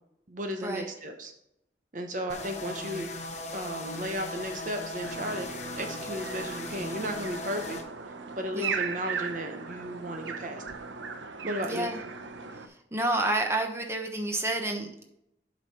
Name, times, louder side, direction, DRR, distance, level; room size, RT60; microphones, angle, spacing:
voice 1, 0.3-1.3 1.9-3.1 3.5-5.5 5.8-7.8 8.4-10.6 11.4-11.9, equal, 45° right, 5 dB, 0.9 m, -34 dB
sound 1, 2.3-7.8, left 2 dB, 40° left, 1.0 m, -38 dB
sound 2, 5.0-12.7, right 5 dB, 80° right, 0.7 m, -38 dB
voice 2, 11.6-12.0 12.7-15.0, right 2 dB, 15° right, 3 dB, 1.0 m, -30 dB
8.1 x 5.3 x 4.2 m, 0.78 s
head